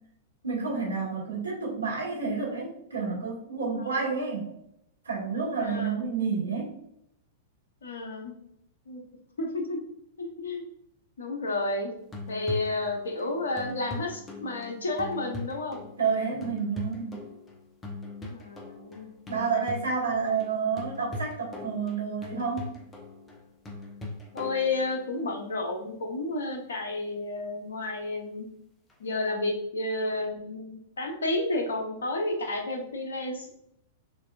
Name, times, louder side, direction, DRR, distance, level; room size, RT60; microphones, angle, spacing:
voice 1, 0.4-4.5 5.1-6.7 16.0-17.2 19.3-22.6, right 5 dB, 75° right, -4 dB, 1.7 m, -29 dB
voice 2, 3.8-4.1 5.6-6.0 7.8-8.3 8.9-9.0 9.4-9.8 10.2-10.6 11.2-11.9 12.3-15.8 18.3-19.1 24.3-28.5 29.0-33.5, left 2 dB, 65° left, 3 dB, 0.9 m, -31 dB
sound 1, 12.0-25.4 28.9-29.0, left 2 dB, 15° left, 0.8 m, -41 dB
6.4 x 2.7 x 2.5 m, 0.75 s
figure-of-eight pair, 100°, 0 cm